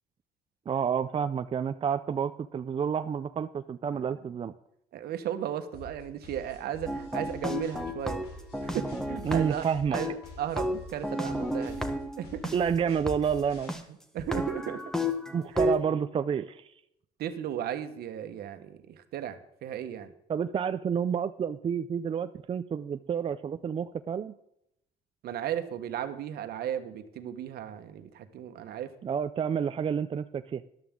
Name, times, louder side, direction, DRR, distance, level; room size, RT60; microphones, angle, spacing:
voice 1, 0.7-4.5 9.2-10.0 12.5-13.8 15.3-16.7 20.3-24.3 29.0-30.6, right 7 dB, 30° right, 10 dB, 0.5 m, -29 dB
voice 2, 4.9-8.2 8.6-9.6 9.9-11.8 12.2-12.5 14.1-14.8 15.5-15.7 17.2-20.1 25.2-28.9, right 10 dB, 70° right, 9 dB, 1.4 m, -35 dB
sound 1, 5.7-13.7, left 1 dB, 70° left, 4.2 m, -48 dB
sound 2, 6.9-9.7 9.9-12.6 13.1-13.2 13.7-13.8 14.2-15.8, left 1 dB, 5° left, 1.4 m, -32 dB
13.0 x 11.5 x 3.8 m, 0.77 s
cardioid pair, 110°, 17 cm